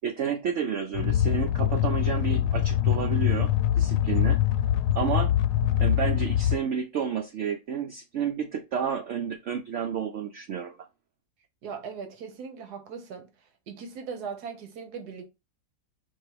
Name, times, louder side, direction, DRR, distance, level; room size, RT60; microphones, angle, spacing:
voice 1, 0.0-4.4 4.9-5.3 5.8-10.8, right 7 dB, 70° right, 0.7 m, -30 dB
sound 1, 0.9-6.6, left 11 dB, 85° left, 1.1 m, -24 dB
voice 2, 11.6-13.3 13.7-15.3, right 6 dB, 85° right, 1.5 m, -39 dB
4.6 x 2.3 x 4.6 m
omnidirectional pair, 1.7 m